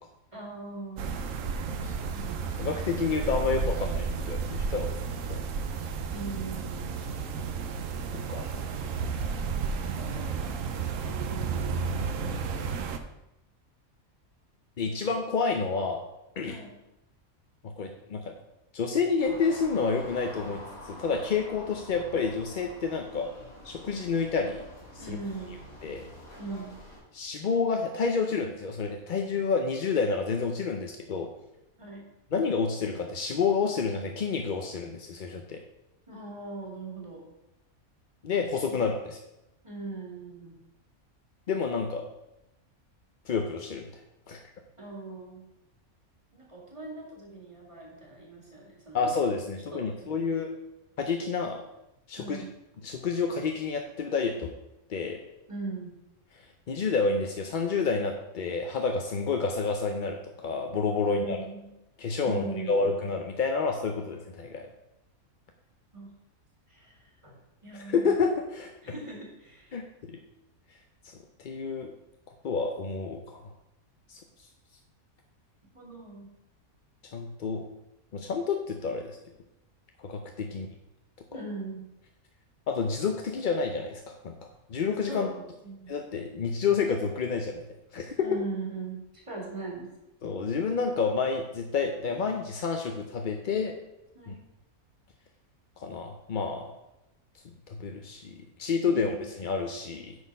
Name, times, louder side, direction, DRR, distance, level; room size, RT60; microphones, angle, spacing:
voice 1, 0.3-1.2 1.7-2.5 6.1-6.9 8.4-12.0 16.4-16.7 25.0-25.6 26.4-26.8 31.8-32.0 36.1-37.2 38.7-38.8 39.6-40.6 44.8-45.4 46.3-49.1 49.7-50.3 52.2-52.5 55.5-55.9 61.0-61.7 62.2-62.9 65.9-66.1 66.7-68.2 68.8-69.8 75.7-76.3 81.3-81.9 85.1-86.0 88.2-89.9 94.1-94.4 98.8-99.2, right 3 dB, 20° right, -3 dB, 2.2 m, -41 dB
sound 1, 1.0-13.0, right 5 dB, 65° right, 1.1 m, -32 dB
voice 2, 2.6-5.0 5.3-5.4 8.3-8.5 14.8-16.0 16.4-16.6 17.6-18.3 18.7-23.3 23.6-24.6 24.9-25.2 25.8-26.1 27.1-31.3 32.3-35.6 38.2-39.2 41.5-42.0 43.3-43.9 44.3-44.4 48.9-50.6 51.0-51.6 52.1-52.4 52.8-54.5 54.9-55.2 56.7-61.4 62.0-64.7 67.7-68.7 69.7-70.2 71.0-71.9 72.4-73.4 74.1-74.2 77.1-77.7 78.1-79.2 80.0-80.7 82.7-85.3 85.9-87.6 87.9-88.3 90.2-93.7 94.3-94.4 95.8-96.7 97.7-100.2, left 5 dB, 50° left, 3 dB, 0.6 m, -29 dB
sound 2, 19.2-27.0, left 1 dB, 70° left, 3.6 m, -46 dB
9.6 x 4.3 x 5.3 m, 0.90 s
omnidirectional pair, 1.5 m